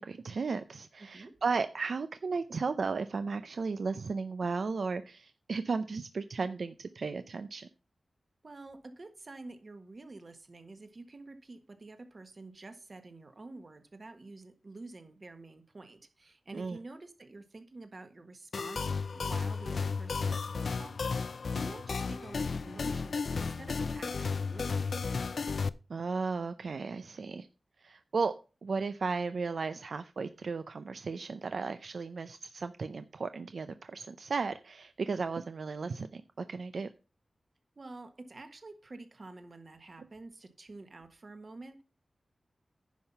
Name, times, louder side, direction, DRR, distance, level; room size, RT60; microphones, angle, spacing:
voice 1, 0.0-7.7 16.5-16.8 25.9-27.5 27.8-28.3 28.6-36.9, right 4 dB, 75° right, 0.5 m, -35 dB
voice 2, 1.0-1.4 8.4-25.2 37.7-41.8, right 2 dB, 45° right, 1.5 m, -49 dB
sound 1, 18.5-25.7, left 5 dB, 75° left, 0.4 m, -33 dB
10.5 x 5.7 x 5.5 m
wide cardioid pair, 85°, 0 cm